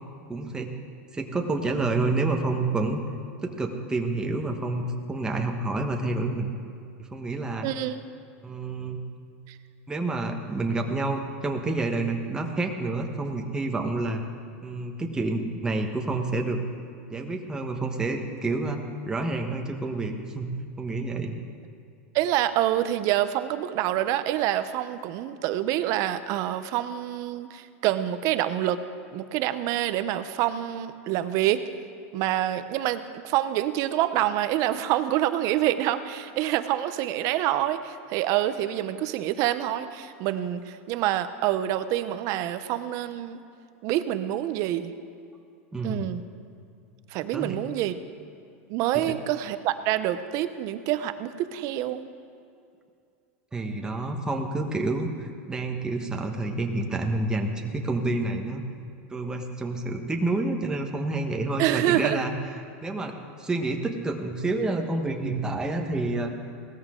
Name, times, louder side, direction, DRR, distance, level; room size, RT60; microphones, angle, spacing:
voice 1, 0.3-0.7 1.1-3.0 3.4-6.5 7.1-7.7 8.4-9.0 9.9-14.2 14.6-16.6 17.1-21.4 45.7-46.1 47.3-47.6 49.1-49.2 53.5-58.6 59.1-62.3 62.8-66.3, right 2 dB, 10° right, 2 dB, 1.3 m, -28 dB
voice 2, 7.6-8.0 9.5-9.6 22.1-28.8 29.1-31.6 32.1-43.4 43.8-44.9 45.8-46.2 47.1-48.0 48.7-52.1 61.6-62.2, right 13 dB, 50° right, 11 dB, 0.8 m, -27 dB
18.0 x 13.5 x 3.8 m, 2.4 s
supercardioid pair, 125°, 7 cm